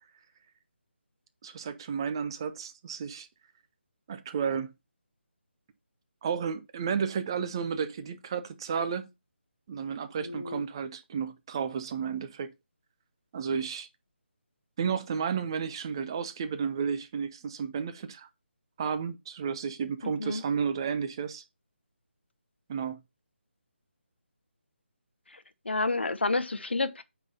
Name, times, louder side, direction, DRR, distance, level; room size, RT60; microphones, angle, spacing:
voice 1, 1.4-3.3 4.1-4.7 6.2-9.1 9.7-12.5 13.3-13.9 14.8-18.3 18.8-21.4 22.7-23.0, right 6 dB, 25° right, 0.5 m, -32 dB
voice 2, 10.2-10.6 20.0-20.4 25.3-27.0, left 3 dB, 65° left, 0.9 m, -30 dB
9.0 x 3.8 x 4.0 m
figure-of-eight pair, 150°, 6 cm